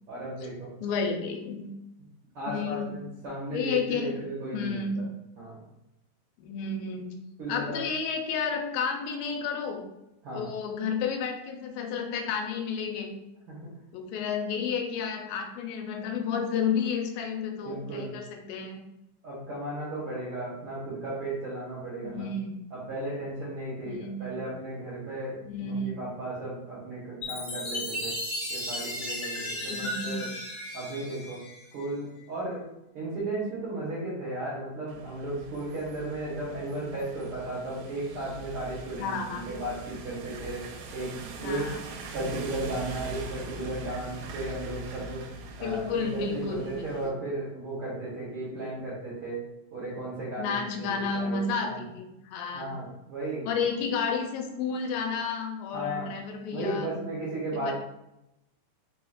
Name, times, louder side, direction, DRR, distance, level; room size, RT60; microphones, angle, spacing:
voice 1, 0.1-0.7 2.3-4.8 5.4-5.7 7.4-7.9 10.2-10.5 13.5-13.7 17.6-18.2 19.2-22.3 22.7-28.2 28.5-30.3 30.7-31.4 31.7-32.7 32.9-41.6 42.1-45.3 45.6-49.4 49.7-51.8 52.5-53.6 55.7-56.1 56.5-57.7, right 2 dB, 70° right, -8 dB, 1.4 m, -35 dB
voice 2, 0.8-1.7 2.5-2.9 3.5-4.2 4.5-5.1 6.4-7.1 7.5-9.8 10.3-13.1 13.9-18.8 22.0-22.7 23.8-24.5 25.4-26.0 29.6-30.3 39.0-39.5 41.4-41.8 45.6-47.2 50.4-52.7 53.5-56.9 57.5-57.7, left 5 dB, 90° left, 3 dB, 2.4 m, -31 dB
Chime, 27.2-31.9, left 1 dB, 60° left, 1.2 m, -35 dB
sound 1, 34.9-47.1, right 2 dB, 90° right, 2.4 m, -42 dB
4.7 x 4.2 x 2.4 m, 0.89 s
omnidirectional pair, 4.1 m